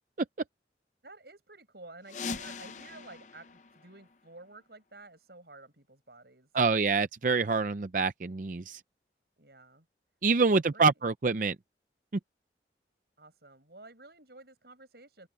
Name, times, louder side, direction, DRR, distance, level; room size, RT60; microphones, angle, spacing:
voice 1, 1.0-7.0 9.4-9.8 10.5-11.0 13.2-15.3, right 2 dB, 65° right, 6.8 m, -52 dB
sound 1, 2.0-4.7, left 4 dB, 45° left, 0.6 m, -42 dB
voice 2, 6.5-8.8 10.2-11.6, right 4 dB, 50° right, 0.5 m, -26 dB
head